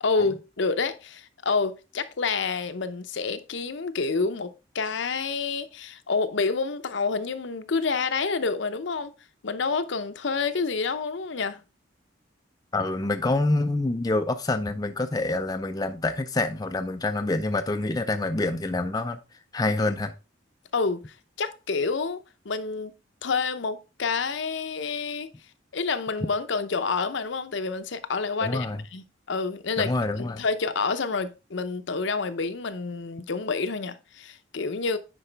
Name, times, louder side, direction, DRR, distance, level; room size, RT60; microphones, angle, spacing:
voice 1, 0.0-9.1 9.4-11.6 20.7-21.0 21.4-22.9 23.2-25.3 25.7-28.7 28.9-29.9 30.4-35.0, left 4 dB, 65° left, 0.7 m, -28 dB
voice 2, 12.7-19.2 19.5-20.1 28.4-28.8 29.8-30.4, left 2 dB, 20° left, 0.4 m, -26 dB
9.8 x 4.8 x 3.3 m
head